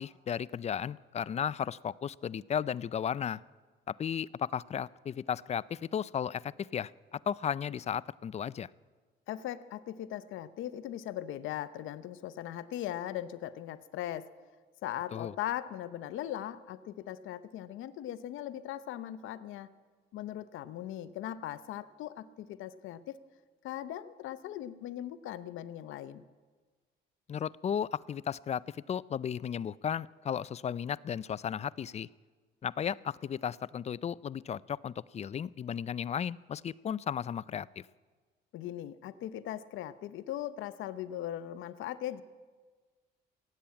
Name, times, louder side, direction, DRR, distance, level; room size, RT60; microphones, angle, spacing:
voice 1, 0.0-3.4 3.9-8.7 15.1-15.3 27.3-32.1 32.6-37.8, left 8 dB, 35° left, 21 dB, 0.3 m, -35 dB
voice 2, 9.3-14.3 14.8-19.7 20.1-23.1 23.6-26.2 38.5-42.2, left 12 dB, 85° left, 14 dB, 0.7 m, -39 dB
16.0 x 8.5 x 8.8 m, 1.4 s
cardioid pair, 90°, 20 cm